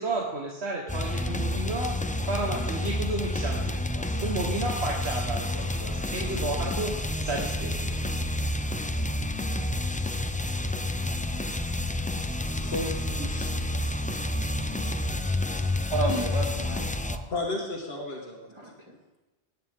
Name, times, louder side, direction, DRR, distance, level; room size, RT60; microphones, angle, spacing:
voice 1, 0.0-2.0 2.3-8.0, right 3 dB, 80° right, -2 dB, 1.8 m, -32 dB
sound 1, 0.9-17.2, left 1 dB, 15° left, 0.3 m, -29 dB
sound 2, 3.8-9.1, right 2 dB, 5° right, 3.8 m, -49 dB
voice 2, 12.5-13.7 15.8-15.9 17.3-18.4, left 2 dB, 70° left, -1 dB, 1.8 m, -34 dB
voice 3, 14.2-17.3 18.5-18.8, right 2 dB, 30° right, 0 dB, 2.2 m, -34 dB
18.0 x 9.4 x 3.7 m, 1.1 s
omnidirectional pair, 1.1 m